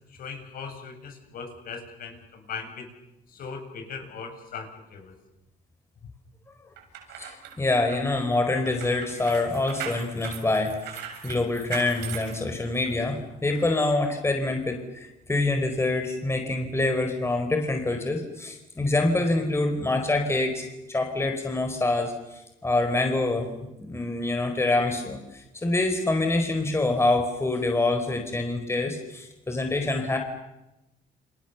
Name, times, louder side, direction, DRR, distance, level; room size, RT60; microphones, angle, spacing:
voice 1, 0.1-2.9 3.3-5.1, left 5 dB, 60° left, 5 dB, 7.5 m, -39 dB
sound 1, 6.8-13.0 13.5-13.7, right 8 dB, 85° right, 7.7 m, -39 dB
voice 2, 7.2-23.5 23.8-30.2, left 2 dB, 15° left, 5 dB, 4.4 m, -26 dB
29.5 x 28.0 x 7.0 m, 0.94 s
cardioid pair, 110°, 17 cm